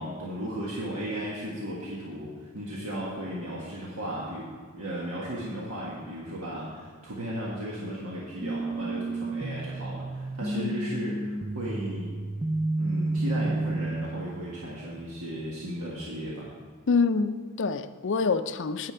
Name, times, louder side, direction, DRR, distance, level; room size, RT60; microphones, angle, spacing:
voice 1, 0.0-4.5 4.7-12.2 12.8-16.5, equal, 80° right, -5 dB, 1.6 m, -35 dB
sound 1, 8.4-14.4, right 2 dB, 15° right, 0.5 m, -31 dB
voice 2, 16.9-18.9, left 4 dB, 55° left, 11 dB, 0.5 m, -26 dB
9.9 x 5.1 x 7.6 m, 1.5 s
head